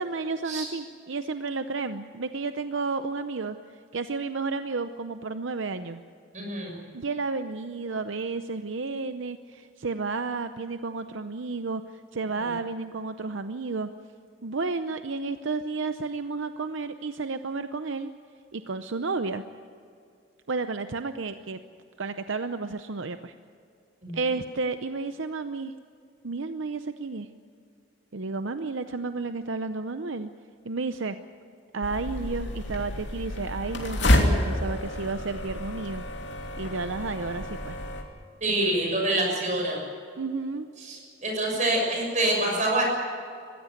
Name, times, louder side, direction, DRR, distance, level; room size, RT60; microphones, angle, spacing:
voice 1, 0.0-3.6 3.9-6.0 6.9-11.8 12.1-13.9 14.4-18.1 18.5-19.4 20.5-21.6 22.0-23.3 24.1-25.7 26.2-27.3 28.1-30.3 30.6-31.2 31.7-36.0 36.6-37.8 40.2-40.7, right 3 dB, 75° right, 9 dB, 0.7 m, -32 dB
voice 2, 6.3-6.8 12.4-12.5 24.0-24.2 38.4-39.8 40.8-42.8, right 1 dB, 35° right, 1 dB, 6.4 m, -26 dB
sound 1, 31.8-38.0, left 1 dB, 65° left, 3.1 m, -28 dB
21.5 x 15.5 x 9.3 m, 2.4 s
head